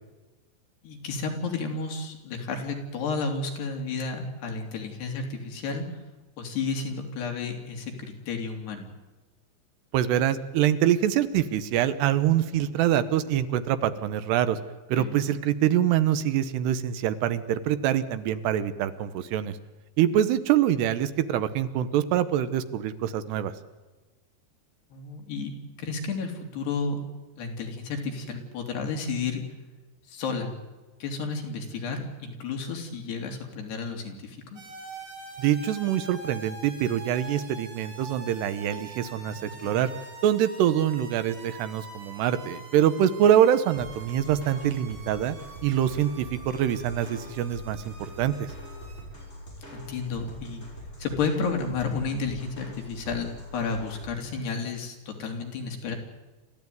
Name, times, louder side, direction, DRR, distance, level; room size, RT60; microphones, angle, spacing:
voice 1, 0.8-5.9 6.4-8.9 15.0-15.1 24.9-25.5 25.8-27.0 27.4-29.4 30.1-30.5 31.0-34.6 39.3-39.8 44.6-44.7 49.7-50.7 51.0-56.0, left 4 dB, 70° left, 3 dB, 5.2 m, -32 dB
voice 2, 9.9-14.6 14.9-19.6 20.0-23.5 35.4-39.9 40.2-45.4 45.6-48.5, right 10 dB, 75° right, 13 dB, 3.0 m, -25 dB
sound 1, 34.6-49.0, right 2 dB, 35° right, 7.0 m, -45 dB
sound 2, 43.7-54.1, equal, 15° left, 7.2 m, -43 dB
28.0 x 15.0 x 9.4 m, 1.2 s
omnidirectional pair, 5.0 m